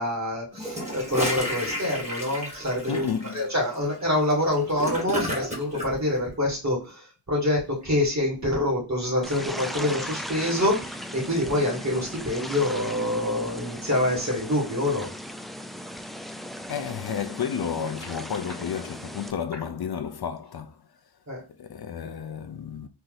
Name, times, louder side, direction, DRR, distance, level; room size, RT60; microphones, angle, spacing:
voice 1, 0.0-15.1 21.3-21.4, left 1 dB, 40° right, 2.3 m, -26 dB
Gurgling / Toilet flush, 0.5-5.9, equal, 15° right, 1.7 m, -32 dB
voice 2, 2.9-3.5 16.7-20.9 21.6-22.9, left 7 dB, 65° left, 0.5 m, -32 dB
sound 1, 9.2-19.3, equal, ahead, 0.3 m, -38 dB
4.4 x 2.6 x 3.9 m
wide cardioid pair, 80°, 42 cm